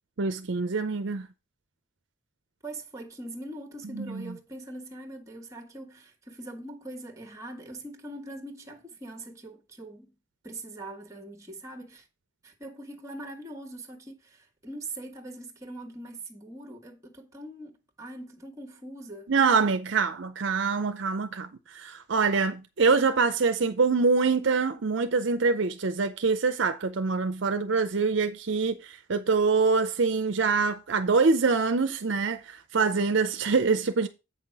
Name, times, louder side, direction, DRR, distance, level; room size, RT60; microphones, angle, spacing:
voice 1, 0.2-1.3 3.9-4.4 19.3-34.1, right 4 dB, 60° right, 0.6 m, -25 dB
voice 2, 2.6-10.1 10.4-12.1 12.4-19.3, right 1 dB, 15° right, 1.3 m, -42 dB
8.2 x 5.8 x 4.7 m
head